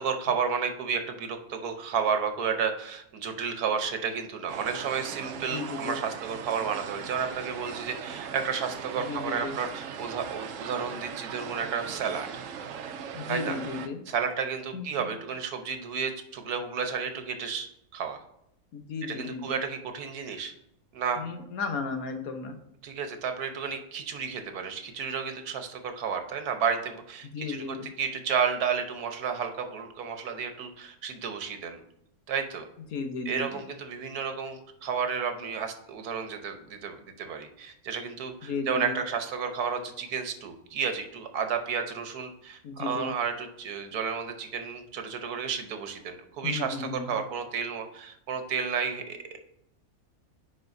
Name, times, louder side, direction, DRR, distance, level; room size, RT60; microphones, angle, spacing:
voice 1, 0.0-12.3 13.3-13.6 14.1-18.2 19.0-20.5 20.9-21.2 22.8-31.8 32.3-32.7 33.3-49.4, right 6 dB, 85° right, 7 dB, 1.5 m, -32 dB
sound 1, 4.5-13.9, right 7 dB, 65° right, 0.9 m, -39 dB
voice 2, 5.5-5.9 9.0-9.6 13.1-14.0 14.7-15.2 18.7-19.6 21.2-22.6 27.3-27.9 32.9-33.6 38.4-39.0 42.6-43.1 46.4-47.2, left 5 dB, 75° left, 6 dB, 1.4 m, -35 dB
9.6 x 4.4 x 2.7 m, 0.76 s
omnidirectional pair, 1.6 m